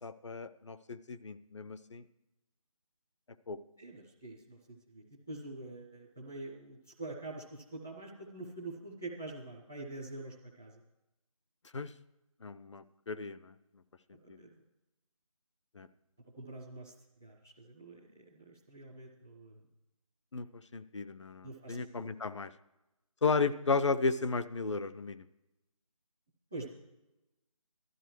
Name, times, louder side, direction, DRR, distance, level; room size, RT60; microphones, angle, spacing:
voice 1, 0.0-2.0 3.5-3.6 11.7-11.9 12.4-13.6 14.3-14.4 15.7-15.9 20.3-20.5 20.7-22.5 23.2-25.3, left 4 dB, 55° left, 13 dB, 0.7 m, -34 dB
voice 2, 3.8-10.8 14.1-14.5 16.4-16.9 17.2-19.7 21.4-22.1 23.2-23.3 26.5-26.8, right 2 dB, 5° left, -5 dB, 0.4 m, -46 dB
12.5 x 12.5 x 4.6 m, 0.96 s
figure-of-eight pair, 165°, 19 cm